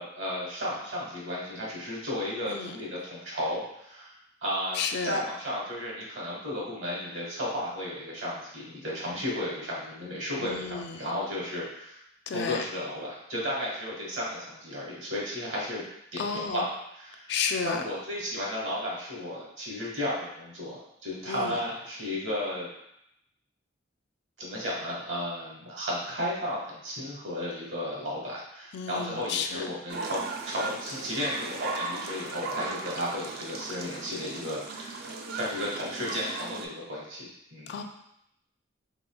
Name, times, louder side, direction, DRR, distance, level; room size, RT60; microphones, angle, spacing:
voice 1, 0.0-4.1 4.4-12.0 12.3-15.8 16.1-16.7 16.9-17.3 17.6-22.7 24.4-37.7, left 1 dB, 70° right, -4 dB, 1.5 m, -34 dB
voice 2, 4.7-5.2 10.4-11.1 12.3-12.6 16.2-16.7 17.3-17.8 21.3-21.6 28.7-29.7 37.7-37.8, left 6 dB, 60° left, 5 dB, 0.3 m, -32 dB
sound 1, 29.9-36.6, right 3 dB, 50° right, 0.4 m, -37 dB
3.9 x 3.8 x 2.3 m, 0.79 s
head